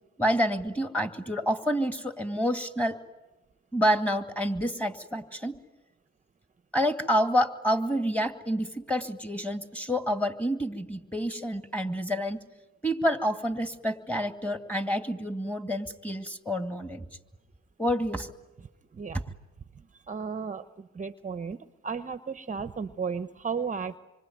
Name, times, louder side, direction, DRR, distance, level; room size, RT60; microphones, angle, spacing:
voice 1, 0.2-3.0 3.7-5.6 6.7-12.4 12.8-17.1 17.8-18.3 19.1-19.2, equal, 5° left, 8 dB, 2.2 m, -28 dB
voice 2, 20.1-20.6 20.9-21.6 21.8-24.0, right 5 dB, 25° right, 12 dB, 0.9 m, -33 dB
26.5 x 24.5 x 9.3 m, 1.1 s
cardioid pair, 90°, 30 cm